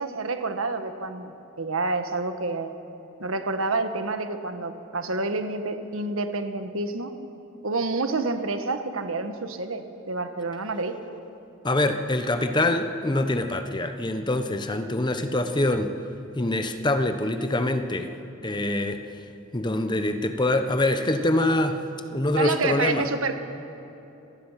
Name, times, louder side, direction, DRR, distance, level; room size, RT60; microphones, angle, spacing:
voice 1, 0.0-2.7 3.2-7.1 7.6-11.0 22.3-23.4, right 3 dB, 80° right, 7 dB, 1.4 m, -28 dB
voice 2, 11.6-15.9 16.4-18.1 18.4-19.0 19.5-21.8 22.1-23.1, left 1 dB, 20° left, 8 dB, 0.9 m, -24 dB
26.5 x 19.0 x 5.8 m, 3.0 s
head